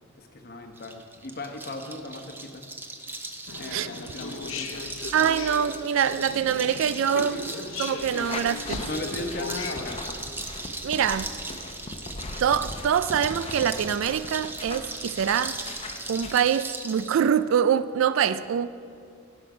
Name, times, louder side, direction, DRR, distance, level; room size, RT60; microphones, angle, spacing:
voice 1, 0.2-2.6 3.6-4.9 7.1-7.7 8.0-8.3 8.8-10.0, left 2 dB, 45° left, 1.0 m, -37 dB
sound 1, 0.8-17.2, right 2 dB, 10° right, 0.6 m, -38 dB
sound 2, 3.5-10.0, left 5 dB, 65° left, 0.6 m, -38 dB
voice 2, 5.1-7.4 7.8-8.8 10.8-11.3 12.4-15.7 16.1-18.7, right 8 dB, 60° right, 0.3 m, -24 dB
sound 3, 8.0-16.3, left 2 dB, 25° left, 0.7 m, -39 dB
17.5 x 6.1 x 5.0 m
head